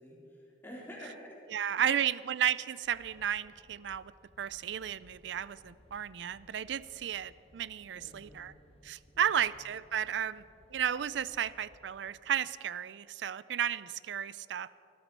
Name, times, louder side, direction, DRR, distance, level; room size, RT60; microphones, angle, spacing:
voice 1, 0.0-1.4 1.8-1.9 7.9-8.5 9.1-9.3, equal, 10° left, -4 dB, 3.4 m, -49 dB
voice 2, 1.5-4.1 4.4-8.5 8.8-10.4 10.7-14.7, right 9 dB, 75° right, 18 dB, 0.4 m, -33 dB
sound 1, 2.8-12.1, left 1 dB, 35° left, 1.1 m, -62 dB
19.5 x 13.0 x 4.6 m, 2.8 s
head